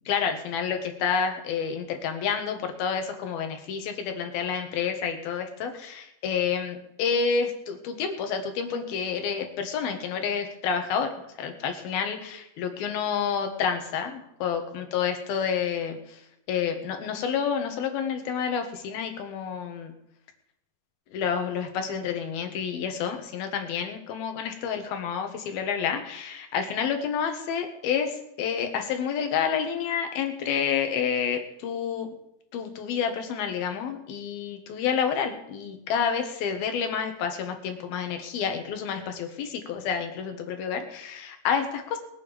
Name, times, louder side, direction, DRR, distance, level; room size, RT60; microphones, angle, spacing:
voice 1, 0.1-11.1 11.4-16.2 16.5-19.9 21.1-32.1 32.5-42.0, left 7 dB, 70° left, 5 dB, 3.3 m, -29 dB
21.0 x 9.3 x 5.3 m, 0.81 s
omnidirectional pair, 4.7 m